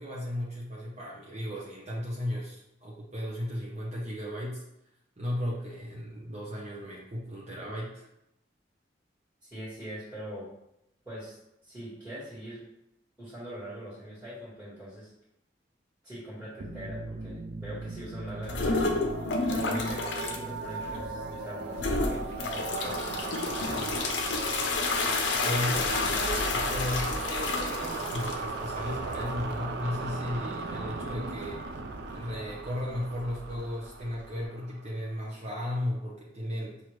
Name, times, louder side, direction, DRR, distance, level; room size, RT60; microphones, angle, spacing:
voice 1, 0.0-4.6 5.2-8.1 25.4-31.6 32.1-36.8, left 1 dB, 40° right, -6 dB, 0.9 m, -35 dB
voice 2, 9.4-10.5 11.0-11.4 11.6-12.6 13.2-15.1 16.0-19.1 19.5-21.8 22.1-24.0, equal, 10° right, -14 dB, 1.7 m, -42 dB
sound 1, 16.6-35.1, right 3 dB, 60° right, 0.5 m, -37 dB
sound 2, 18.4-20.4 20.8-21.3 21.7-34.4, left 3 dB, 80° left, 0.7 m, -31 dB
5.9 x 2.8 x 3.2 m, 0.83 s
head